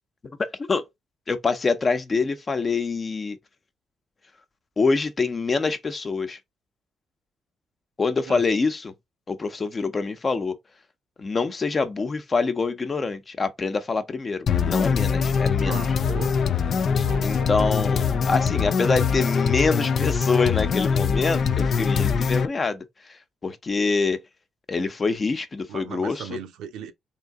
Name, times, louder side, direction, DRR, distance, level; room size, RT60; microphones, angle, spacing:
voice 1, 1.3-3.4 4.8-6.4 8.0-8.9 9.3-10.6 11.2-15.8 16.9-24.2 24.7-26.2, left 4 dB, 35° left, 0.7 m, -25 dB
sound 1, 14.5-22.5, left 6 dB, 60° left, 0.4 m, -23 dB
voice 2, 15.7-16.4 17.0-17.8 25.7-26.9, right 8 dB, 90° right, 0.7 m, -38 dB
3.7 x 2.7 x 3.5 m
cardioid pair, 90°, 0 cm